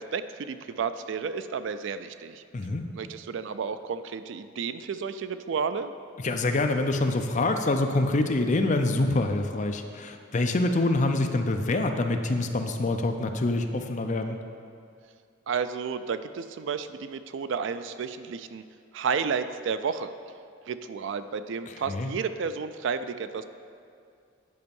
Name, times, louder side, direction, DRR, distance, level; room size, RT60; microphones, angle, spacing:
voice 1, 0.0-2.4 2.9-5.9 15.5-18.6 18.9-20.1 20.7-23.4, right 6 dB, 65° right, 11 dB, 0.4 m, -32 dB
voice 2, 2.5-2.9 6.2-14.4 21.7-22.1, left 2 dB, 35° left, 5 dB, 0.5 m, -26 dB
9.5 x 5.3 x 5.3 m, 2.3 s
head